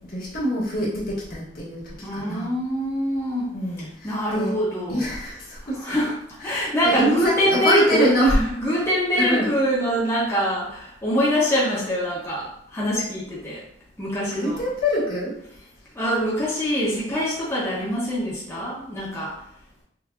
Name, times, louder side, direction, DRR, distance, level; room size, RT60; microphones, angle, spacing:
voice 1, 0.1-2.5 3.5-4.5 4.9-5.9 6.4-8.7 9.2-9.5 14.3-15.4 17.8-18.0, equal, 55° left, -7 dB, 1.6 m, -24 dB
voice 2, 2.0-3.5 4.0-5.1 5.7-13.6 14.0-14.6 15.9-19.3, equal, 15° left, -7 dB, 1.0 m, -24 dB
6.1 x 2.7 x 2.4 m, 0.69 s
head